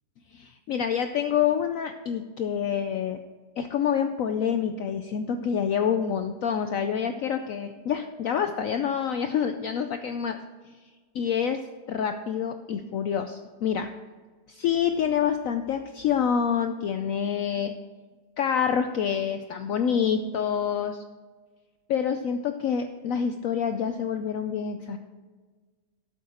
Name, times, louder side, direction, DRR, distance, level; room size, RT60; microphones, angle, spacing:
voice 1, 0.3-3.2 3.6-10.4 10.6-10.7 11.1-11.6 11.9-13.9 14.5-17.7 18.4-21.0 21.9-25.0, left 8 dB, 65° left, 8 dB, 0.9 m, -27 dB
12.5 x 8.3 x 4.2 m, 1.4 s
omnidirectional pair, 1.8 m